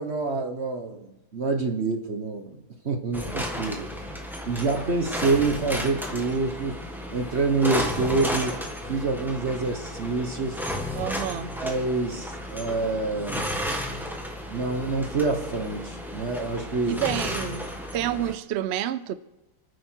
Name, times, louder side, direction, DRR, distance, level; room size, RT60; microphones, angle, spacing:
voice 1, 0.0-3.9 4.4-6.8 7.1-8.6 8.9-10.6 11.5-13.5 14.5-17.0, right 3 dB, 40° right, 5 dB, 1.3 m, -27 dB
sound 1, 3.1-18.3, equal, ahead, 1.8 m, -33 dB
voice 2, 10.9-11.5 16.9-17.7 17.9-19.1, right 11 dB, 60° right, 14 dB, 0.7 m, -28 dB
29.0 x 9.7 x 4.6 m, 1.0 s
omnidirectional pair, 1.9 m